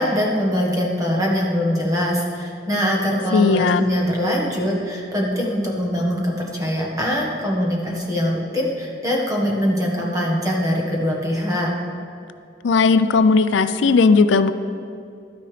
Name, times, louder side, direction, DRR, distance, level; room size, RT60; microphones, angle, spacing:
voice 1, 0.0-11.7, equal, 20° right, -2 dB, 1.4 m, -22 dB
voice 2, 3.3-3.8 12.6-14.5, left 4 dB, 75° left, 12 dB, 0.4 m, -16 dB
12.5 x 9.4 x 3.4 m, 2.5 s
head